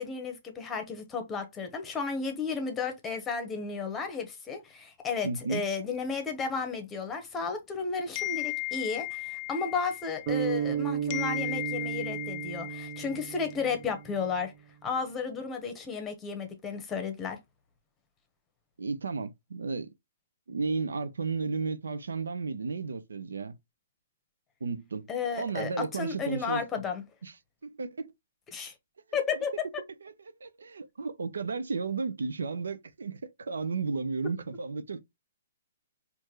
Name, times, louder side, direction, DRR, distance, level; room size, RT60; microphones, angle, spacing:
voice 1, 0.0-14.5 14.8-17.4 25.1-27.0 28.5-28.7 29.1-29.7, left 5 dB, 15° left, 1.0 m, -33 dB
voice 2, 5.2-5.6 18.8-19.9 20.5-23.5 24.6-25.1 25.4-26.6 27.2-27.3 27.6-28.1 29.3-29.4 30.0-35.0, right 4 dB, 85° right, 0.6 m, -33 dB
sound 1, 8.2-10.8 11.1-13.7, left 23 dB, 35° left, 0.4 m, -36 dB
sound 2, 10.3-14.5, right 9 dB, 35° right, 0.9 m, -34 dB
4.5 x 2.6 x 3.0 m
hypercardioid pair, 140°, 0 cm